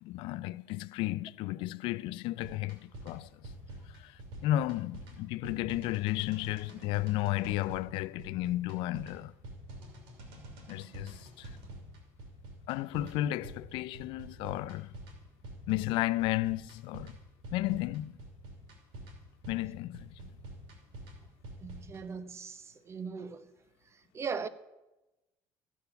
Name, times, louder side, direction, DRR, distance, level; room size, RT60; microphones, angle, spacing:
voice 1, 0.0-3.5 3.9-9.3 10.7-11.5 12.7-14.9 15.7-17.2 17.5-18.1 19.5-20.1, left 16 dB, 75° left, 0.4 m, -33 dB
sound 1, 2.4-22.0, right 1 dB, 80° right, 2.9 m, -48 dB
voice 2, 21.6-23.5 24.1-24.5, right 5 dB, 30° right, 0.8 m, -39 dB
14.0 x 8.3 x 5.8 m
cardioid pair, 105°, 9 cm